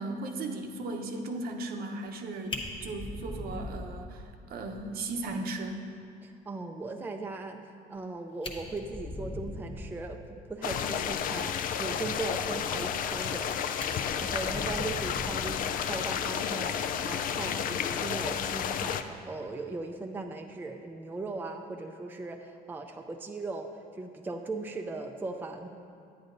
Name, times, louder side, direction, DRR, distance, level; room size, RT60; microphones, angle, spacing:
voice 1, 0.0-5.9, right 2 dB, 65° right, 3 dB, 0.8 m, -36 dB
Fire, 2.1-2.2 2.5-4.4 4.8-4.9 5.3-5.4 5.7-5.8 7.9-8.0 8.3-10.1 12.9-13.4 13.8-16.0 17.3-17.5, left 2 dB, 30° left, 1.0 m, -40 dB
voice 2, 6.2-13.6 13.9-25.7, right 3 dB, 10° right, 4 dB, 0.4 m, -38 dB
sound 1, 10.6-19.0, left 8 dB, 55° left, 0.4 m, -31 dB
9.7 x 9.3 x 2.6 m, 2.4 s
cardioid pair, 110°, 17 cm